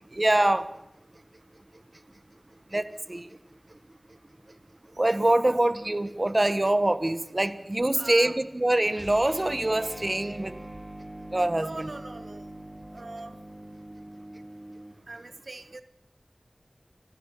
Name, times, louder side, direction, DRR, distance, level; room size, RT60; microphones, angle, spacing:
voice 1, 0.1-0.7 2.7-3.3 5.0-10.5 11.3-11.7, right 1 dB, 40° right, 12 dB, 1.3 m, -24 dB
voice 2, 7.9-8.4 11.6-12.5 12.9-13.4 15.1-15.8, right 2 dB, 90° right, 10 dB, 1.3 m, -41 dB
sound 1, 8.9-15.0, right 1 dB, 25° right, 4.3 m, -43 dB
29.0 x 25.0 x 5.7 m, 0.88 s
wide cardioid pair, 45°, 0 cm